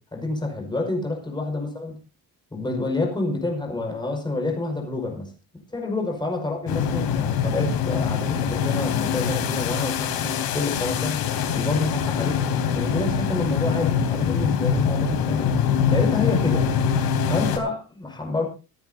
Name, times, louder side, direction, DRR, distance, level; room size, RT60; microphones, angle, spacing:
voice 1, 0.1-1.9 2.5-5.3 5.7-11.3 11.5-12.4 12.8-15.6 15.9-16.7 17.3-18.4, left 2 dB, 10° left, 2 dB, 5.5 m, -28 dB
sound 1, 6.7-17.6, left 7 dB, 80° left, 3.5 m, -24 dB
25.5 x 10.5 x 2.8 m, 0.31 s
cardioid pair, 165°, 36 cm